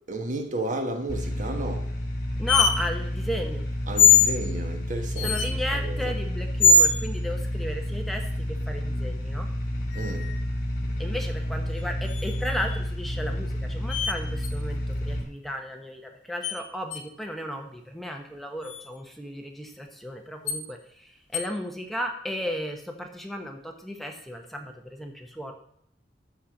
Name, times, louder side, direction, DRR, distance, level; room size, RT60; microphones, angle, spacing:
voice 1, 0.1-1.9 3.9-6.2 9.9-10.3, right 1 dB, 45° right, 1.4 m, -33 dB
sound 1, 1.1-15.2, equal, 55° left, 2.9 m, -30 dB
voice 2, 2.4-3.6 5.2-9.5 11.0-20.8 21.3-25.5, equal, ahead, 1.1 m, -34 dB
sound 2, 2.5-2.7 4.0-4.4 5.2-5.5 6.6-7.0 9.9-10.4 12.1-12.7 13.9-14.1 14.4-14.5 16.4-16.5 16.9-17.0 18.6-18.8 20.5-20.6 21.3-21.4, left 4 dB, 85° left, 1.2 m, -21 dB
13.0 x 4.4 x 7.3 m
head